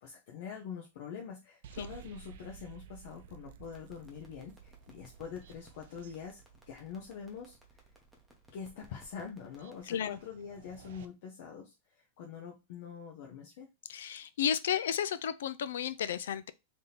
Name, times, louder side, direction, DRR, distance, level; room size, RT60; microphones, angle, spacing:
voice 1, 0.0-6.4 6.7-7.6 8.5-13.7, left 7 dB, 55° left, 0.7 m, -45 dB
sound 1, 1.6-11.1, right 8 dB, 60° right, 0.4 m, -55 dB
sound 2, 3.6-10.2, left 1 dB, ahead, 0.8 m, -62 dB
voice 2, 9.9-10.2 13.9-16.5, left 9 dB, 85° left, 0.4 m, -33 dB
3.5 x 2.8 x 3.9 m
supercardioid pair, 165°, 0 cm